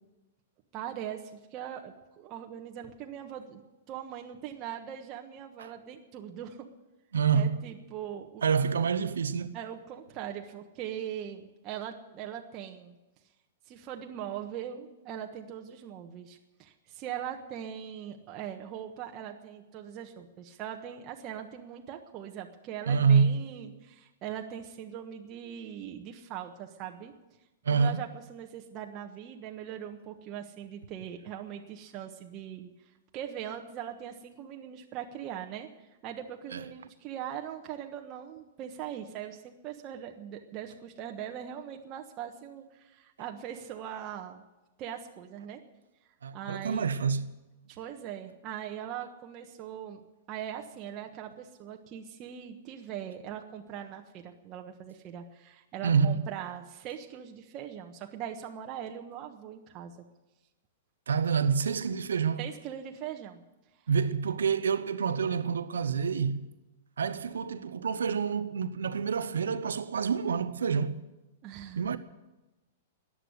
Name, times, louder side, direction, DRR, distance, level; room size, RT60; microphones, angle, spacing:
voice 1, 0.7-3.6 3.9-6.7 7.3-8.6 9.5-13.0 13.7-27.1 27.7-44.4 44.8-45.6 46.3-46.9 47.7-50.0 50.3-60.0 62.4-63.4 71.4-71.8, right 10 dB, 35° right, 1.3 m, -41 dB
voice 2, 7.1-7.6 8.4-9.6 22.9-23.7 27.6-28.0 36.5-36.6 46.2-47.3 55.8-56.3 61.1-62.4 63.9-66.4 67.0-71.0 71.8-72.0, right 6 dB, 75° right, 0.9 m, -27 dB
14.0 x 10.0 x 9.7 m
hypercardioid pair, 110°, 0 cm